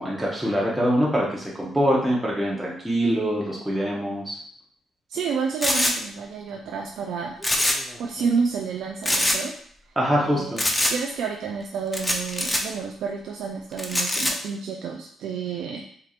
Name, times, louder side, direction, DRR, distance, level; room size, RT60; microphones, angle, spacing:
voice 1, 0.0-4.4 10.0-10.6, equal, 5° right, -5 dB, 1.0 m, -24 dB
voice 2, 5.1-7.4 8.0-9.5 10.2-10.6 10.9-15.8, right 5 dB, 75° right, 2 dB, 0.3 m, -30 dB
sound 1, 5.6-5.9 7.4-7.9 8.2-8.3 9.0-9.4 10.6-10.9 11.9-12.6 13.8-14.3, left 1 dB, 10° left, 0.6 m, -23 dB
4.5 x 2.9 x 2.5 m, 0.63 s
cardioid pair, 90°, 0 cm